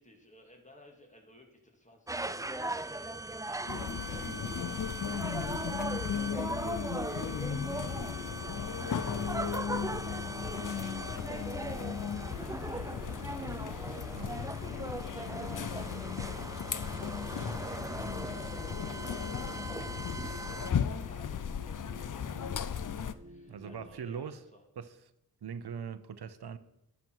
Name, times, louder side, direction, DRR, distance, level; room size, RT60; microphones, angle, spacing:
voice 1, 0.0-24.6, left 1 dB, 20° left, 2 dB, 2.1 m, -57 dB
sound 1, 2.1-20.7, right 2 dB, 10° right, 0.4 m, -39 dB
sound 2, 3.7-23.1, left 8 dB, 50° left, 0.6 m, -36 dB
sound 3, 4.2-24.0, right 1 dB, 25° right, 0.9 m, -53 dB
voice 2, 23.5-24.4 24.8-25.0 25.4-26.6, right 7 dB, 75° right, 13 dB, 0.7 m, -41 dB
11.0 x 6.3 x 4.6 m, 0.87 s
wide cardioid pair, 60°, 39 cm